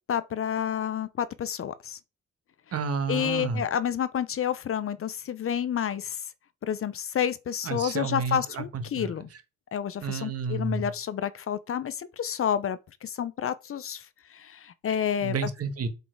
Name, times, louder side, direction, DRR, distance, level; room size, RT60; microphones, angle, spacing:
voice 1, 0.1-2.0 3.1-6.2 6.6-9.3 9.7-15.4, left 9 dB, 45° left, 0.7 m, -30 dB
voice 2, 2.7-3.6 7.6-9.1 10.0-10.8 15.2-15.9, right 5 dB, 50° right, 1.5 m, -31 dB
7.4 x 4.1 x 4.6 m
cardioid pair, 90°, 30 cm